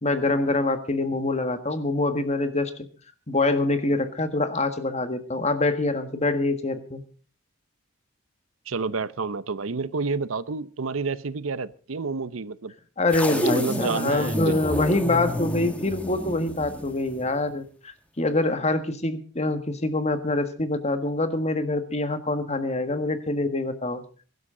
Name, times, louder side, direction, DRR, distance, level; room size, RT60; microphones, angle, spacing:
voice 1, 0.0-2.7 3.3-7.0 13.0-24.0, left 2 dB, 35° left, 1.6 m, -25 dB
voice 2, 8.7-12.7 13.3-14.6, right 4 dB, 85° right, 0.7 m, -29 dB
sound 1, 13.1-17.4, equal, 5° left, 1.7 m, -30 dB
22.0 x 12.0 x 3.8 m
head